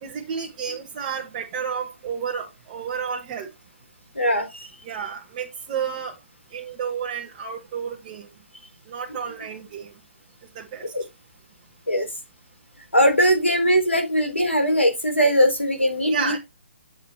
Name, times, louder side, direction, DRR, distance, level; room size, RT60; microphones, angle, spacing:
voice 1, 0.0-3.5 4.8-6.1 6.5-8.3 8.9-9.9 10.5-10.8 16.1-16.4, right 7 dB, 30° right, 1.3 m, -31 dB
voice 2, 4.2-4.7 10.9-11.0 11.9-12.1 12.9-16.1, equal, 90° left, 3.5 m, -20 dB
7.9 x 7.3 x 2.9 m
figure-of-eight pair, 135°, 6 cm